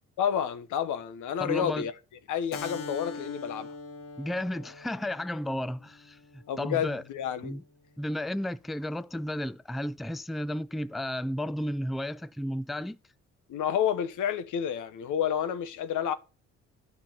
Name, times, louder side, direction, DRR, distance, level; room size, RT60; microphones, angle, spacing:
voice 1, 0.2-1.9 2.3-3.7 6.5-7.6 13.5-16.1, left 9 dB, 80° left, 1.1 m, -30 dB
voice 2, 1.4-1.9 4.2-7.0 7.4-7.6 8.0-13.0, left 1 dB, ahead, 0.4 m, -33 dB
Keyboard (musical), 2.5-7.6, left 3 dB, 45° left, 1.4 m, -43 dB
9.4 x 5.6 x 5.8 m
cardioid pair, 90°, 30 cm